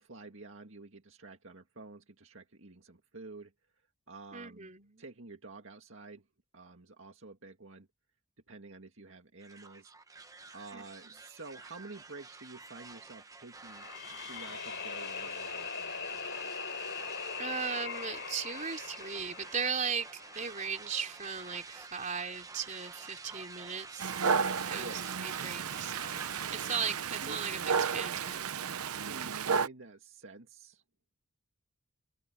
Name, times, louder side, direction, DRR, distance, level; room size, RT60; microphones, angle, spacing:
voice 1, 0.0-3.5 4.1-4.7 5.0-6.3 6.5-7.9 8.5-9.9 10.5-16.3 24.8-25.1 27.1-27.4 29.0-30.8, right 3 dB, 60° right, 2.1 m, -50 dB
voice 2, 4.3-5.0 10.7-11.2 17.4-24.1 24.7-26.2 26.5-28.5, right 6 dB, 35° right, 3.7 m, -37 dB
sound 1, 9.4-27.1, right 3 dB, 15° right, 1.0 m, -49 dB
sound 2, 13.7-20.7, left 6 dB, 55° left, 5.3 m, -41 dB
Dog, 24.0-29.7, right 6 dB, 80° right, 0.8 m, -33 dB
open air
head